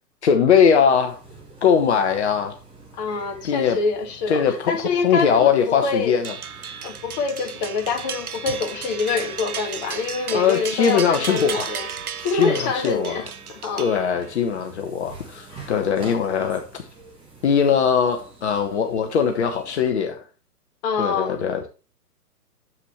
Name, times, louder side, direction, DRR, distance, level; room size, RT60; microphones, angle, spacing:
voice 1, 0.2-1.2 1.6-2.5 3.4-3.8 4.3-6.3 10.3-11.7 12.3-13.2 13.8-16.6 17.4-20.2 21.0-21.7, left 7 dB, 45° left, 1.2 m, -20 dB
sound 1, 0.9-19.9, right 3 dB, 10° right, 2.3 m, -46 dB
voice 2, 2.9-6.2 6.8-11.9 12.2-13.9 15.5-15.7 20.8-21.4, left 4 dB, 25° left, 1.4 m, -26 dB
sound 2, 6.2-14.4, right 7 dB, 60° right, 1.0 m, -34 dB
9.8 x 7.4 x 3.1 m
figure-of-eight pair, 125°, 49 cm